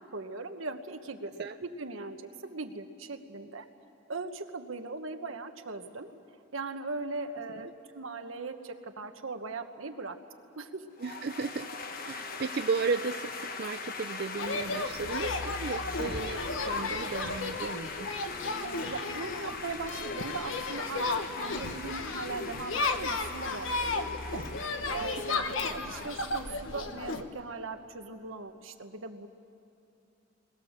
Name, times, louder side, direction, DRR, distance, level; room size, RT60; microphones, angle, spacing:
voice 1, 0.0-3.7 4.1-6.1 6.5-10.2 10.6-10.9 18.6-24.5 24.9-29.3, right 3 dB, 85° right, 7 dB, 1.3 m, -39 dB
sound 1, 11.0-26.5, left 4 dB, 45° left, 1.3 m, -42 dB
voice 2, 11.0-18.1, right 4 dB, 50° right, 8 dB, 0.5 m, -34 dB
sound 2, 14.4-27.2, left 3 dB, 75° left, 1.3 m, -34 dB
27.0 x 21.5 x 7.4 m, 2.8 s
head